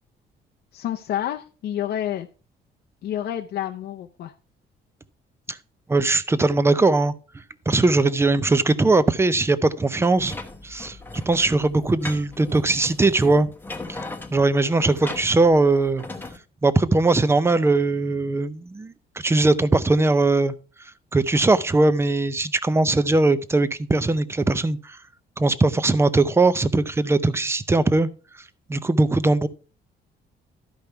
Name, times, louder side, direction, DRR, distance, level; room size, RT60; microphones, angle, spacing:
voice 1, 0.7-2.3 3.0-4.3, left 11 dB, 65° left, 0.6 m, -29 dB
voice 2, 5.9-10.4 10.6-11.0 11.3-13.5 13.9-14.0 14.3-16.0 16.6-25.0 25.4-28.1 28.3-29.5, right 2 dB, 15° right, 0.5 m, -20 dB
sound 1, 10.2-16.4, left 2 dB, 10° left, 1.0 m, -38 dB
12.0 x 5.2 x 4.5 m
cardioid pair, 130°, 18 cm